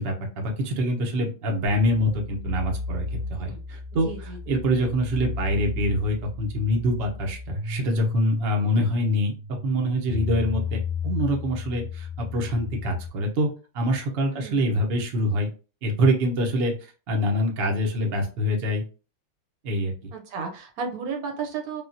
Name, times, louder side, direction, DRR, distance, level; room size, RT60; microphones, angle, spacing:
voice 1, 0.0-9.3 9.6-13.5 13.7-15.5 15.8-16.7 17.1-18.8 19.6-20.1, equal, 85° right, 1 dB, 0.5 m, -25 dB
sound 1, 1.7-13.1, left 4 dB, 70° left, 1.1 m, -34 dB
voice 2, 4.0-4.4 8.7-8.9 14.3-14.8 20.1-21.8, right 5 dB, 65° right, 3 dB, 0.9 m, -34 dB
3.5 x 2.3 x 2.5 m, 0.34 s
omnidirectional pair, 2.1 m